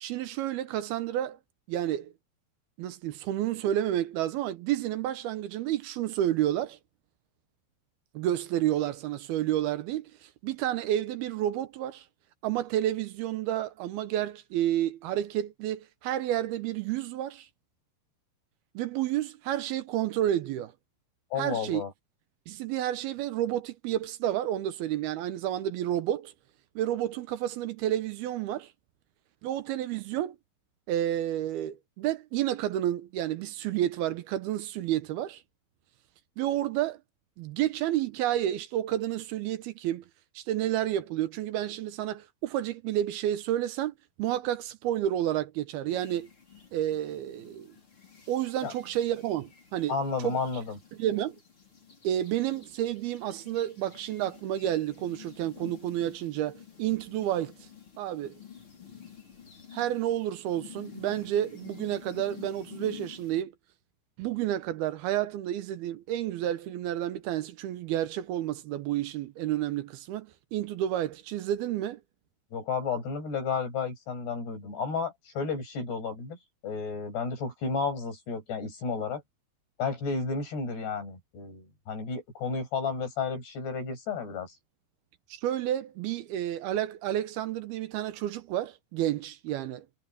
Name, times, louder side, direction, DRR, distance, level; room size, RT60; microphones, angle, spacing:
voice 1, 0.0-1.4 1.7-2.1 2.8-6.8 8.1-12.0 12.4-17.5 18.7-20.7 21.4-21.8 22.5-26.3 26.8-28.7 29.4-30.4 30.9-35.4 36.4-37.0 37.4-40.0 40.4-43.9 44.2-46.3 46.7-47.7 48.3-50.0 50.2-50.4 51.0-51.4 52.0-57.5 58.0-58.3 59.7-63.5 64.2-72.0 85.3-89.9, right 12 dB, 75° right, 2.8 m, -30 dB
voice 2, 21.3-21.9 48.6-48.7 49.9-50.8 72.5-76.4 76.6-79.2 79.8-84.6, left 5 dB, 75° left, 9.7 m, -32 dB
sound 1, 45.9-63.4, left 8 dB, 30° left, 6.7 m, -50 dB
omnidirectional pair, 4.7 m